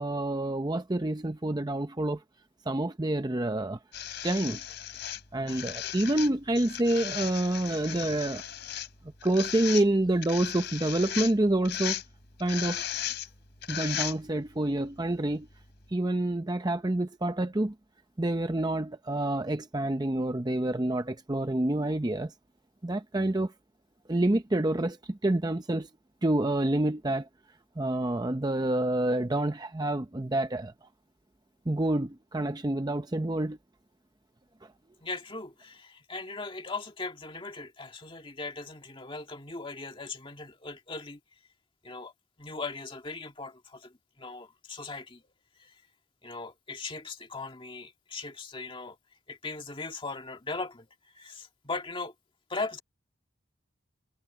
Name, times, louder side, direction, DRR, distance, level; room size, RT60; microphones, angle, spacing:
voice 1, 0.0-2.2 2.7-3.8 4.2-4.6 5.3-8.4 9.2-12.0 12.4-12.8 13.7-15.5 15.9-17.7 18.2-22.3 22.8-23.5 24.1-25.9 26.2-27.3 27.8-30.9 31.7-33.6 34.6-34.7, right 1 dB, 20° right, 0.6 m, -28 dB
sound 1, 3.9-14.5 15.5-15.6, left 10 dB, 55° left, 3.7 m, -36 dB
voice 2, 35.0-41.2 41.8-42.1 42.4-45.2 45.6-45.7 46.2-49.0 49.3-50.9 51.1-52.1 52.5-52.8, left 3 dB, 25° left, 1.9 m, -39 dB
head